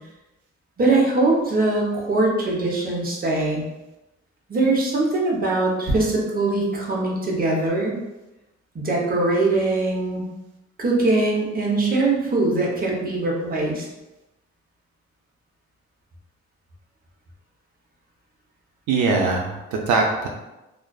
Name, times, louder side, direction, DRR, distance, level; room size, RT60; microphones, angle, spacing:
voice 1, 0.8-3.6 4.5-7.9 8.7-10.2 10.8-13.8, right 2 dB, 30° right, -3 dB, 0.7 m, -22 dB
voice 2, 18.9-20.3, right 3 dB, 80° right, 1 dB, 0.5 m, -21 dB
2.4 x 2.3 x 2.2 m, 1.0 s
cardioid pair, 90°, 30 cm